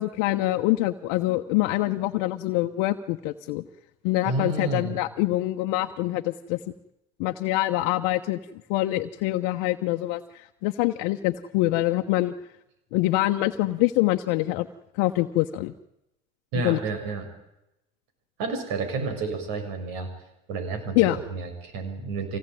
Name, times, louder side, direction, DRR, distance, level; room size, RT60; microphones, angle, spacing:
voice 1, 0.0-3.6 4.0-6.6 7.2-8.4 8.7-12.3 12.9-14.7 14.9-15.7 16.6-16.8 20.9-21.2, left 17 dB, 70° left, 5 dB, 1.1 m, -25 dB
voice 2, 4.2-5.0 16.5-17.3 18.4-20.1 20.5-22.4, right 3 dB, 70° right, 7 dB, 6.8 m, -30 dB
24.5 x 18.0 x 9.2 m, 0.89 s
hypercardioid pair, 75°, 36 cm